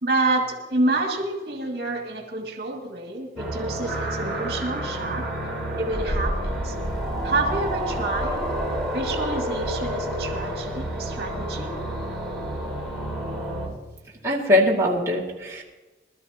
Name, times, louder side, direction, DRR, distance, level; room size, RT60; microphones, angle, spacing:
voice 1, 0.0-5.3 5.8-6.7 7.2-8.4 8.9-11.7, right 2 dB, 60° right, 1 dB, 2.4 m, -28 dB
sound 1, 3.4-13.7, right 1 dB, ahead, 4.6 m, -29 dB
voice 2, 14.2-15.6, left 1 dB, 15° right, -5 dB, 2.4 m, -21 dB
21.0 x 13.0 x 3.0 m, 1.1 s
head